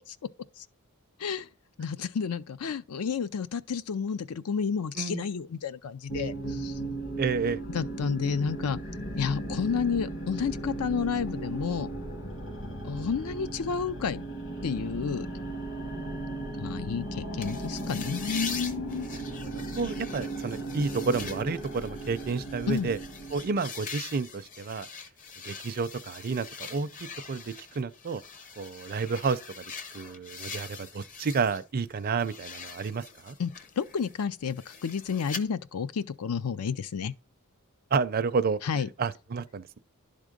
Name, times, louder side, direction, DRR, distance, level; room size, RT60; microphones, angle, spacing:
voice 1, 1.8-6.7 7.7-8.8 9.1-11.9 12.8-14.2 14.6-15.3 16.6-19.1 22.7-22.9 33.4-37.1 38.6-38.9, left 6 dB, 85° left, 0.5 m, -31 dB
voice 2, 5.0-5.3 7.2-7.6 19.1-23.0 23.3-24.9 25.4-28.2 28.6-29.6 29.9-33.4 37.9-39.8, right 4 dB, 45° right, 0.4 m, -31 dB
sound 1, 6.1-23.6, right 2 dB, 55° left, 1.8 m, -36 dB
sound 2, 17.4-31.6 32.0-35.4, left 5 dB, 35° left, 0.7 m, -43 dB
11.0 x 3.7 x 5.1 m
head